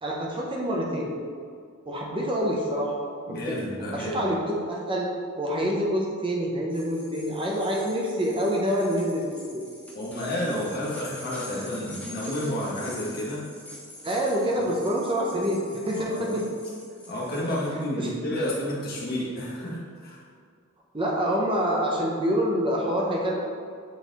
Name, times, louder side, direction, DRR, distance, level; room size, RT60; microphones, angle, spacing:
voice 1, 0.0-1.1 1.9-3.0 3.3-3.6 3.9-5.1 5.4-9.6 14.0-15.6 15.9-16.5 17.5-17.6 18.0-18.1 20.9-23.3, equal, 25° right, -2 dB, 0.7 m, -26 dB
voice 2, 3.3-4.2 9.9-13.5 15.9-16.3 17.1-20.2, left 1 dB, 45° left, -5 dB, 1.6 m, -31 dB
sound 1, 6.7-17.9, left 1 dB, 5° left, 1.0 m, -45 dB
7.1 x 4.0 x 4.0 m, 2.2 s
head